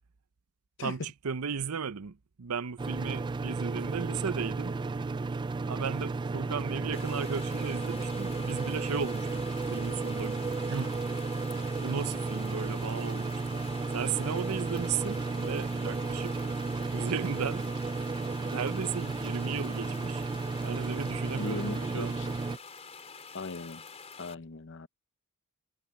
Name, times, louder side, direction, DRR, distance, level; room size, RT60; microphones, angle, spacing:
voice 1, 0.8-4.8 5.7-11.0 11.8-13.4 13.9-16.6 16.9-17.7 18.4-20.2 20.6-22.2, right 6 dB, 70° right, 0.7 m, -35 dB
sound 1, 2.8-22.6, right 3 dB, 20° right, 0.3 m, -33 dB
sound 2, 6.9-24.3, left 5 dB, 30° left, 3.5 m, -47 dB
voice 2, 21.3-22.3 23.3-23.8 24.2-24.9, left 3 dB, 55° left, 0.9 m, -38 dB
head